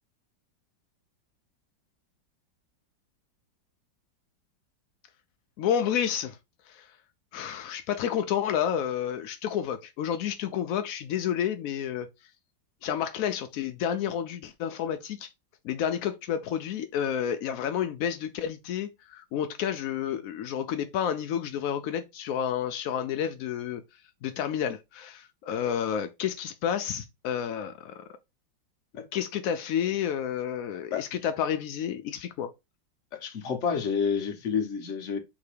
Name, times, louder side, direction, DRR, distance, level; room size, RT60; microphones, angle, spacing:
voice 1, 5.6-6.4 6.7-6.9 7.3-12.1 12.8-15.3 15.6-23.8 24.2-28.0 29.1-32.5, left 9 dB, 80° left, 0.7 m, -30 dB
voice 2, 33.1-35.2, left 6 dB, 50° left, 1.0 m, -29 dB
3.7 x 2.8 x 4.8 m
omnidirectional pair, 2.0 m